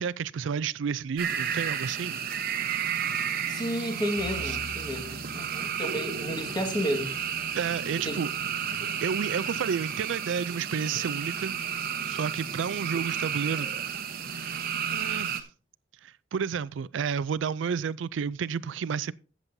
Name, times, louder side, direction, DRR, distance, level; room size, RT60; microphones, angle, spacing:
voice 1, 0.0-2.3 4.5-4.6 7.5-8.3 9.0-11.5 12.0-13.7 14.3-14.5 14.9-15.4 16.0-19.1, right 6 dB, 70° right, 0.4 m, -31 dB
sound 1, 1.2-15.4, right 8 dB, 50° right, 0.9 m, -32 dB
voice 2, 3.5-7.1 8.1-8.2, equal, 25° left, 1.7 m, -32 dB
Bowed string instrument, 4.2-8.6, left 3 dB, 50° left, 2.2 m, -47 dB
16.0 x 7.4 x 2.7 m
head